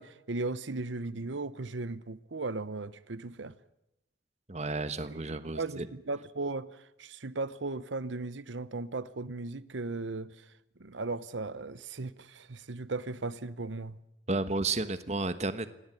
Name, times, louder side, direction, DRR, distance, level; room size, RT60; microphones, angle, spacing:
voice 1, 0.0-3.5 5.1-5.2 5.5-10.5 10.8-14.0, right 3 dB, 90° right, 1.0 m, -37 dB
voice 2, 4.5-5.9 14.3-15.7, right 3 dB, 35° right, 1.3 m, -32 dB
28.0 x 18.5 x 9.9 m
head